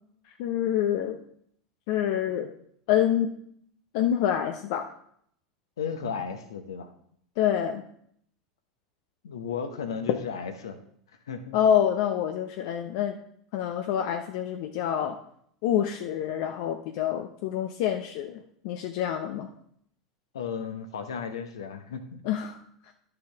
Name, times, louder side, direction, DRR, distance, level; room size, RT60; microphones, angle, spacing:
voice 1, 0.4-1.2 1.9-2.5 2.9-3.3 3.9-4.9 7.4-7.8 11.5-13.2 13.5-15.2 15.6-19.5 22.2-22.6, left 10 dB, 60° left, 5 dB, 0.6 m, -27 dB
voice 2, 5.8-6.9 9.2-10.8 11.3-11.6 20.3-22.2, left 6 dB, 75° left, 7 dB, 1.1 m, -34 dB
11.0 x 6.9 x 3.5 m, 0.67 s
hypercardioid pair, 85°, 3 cm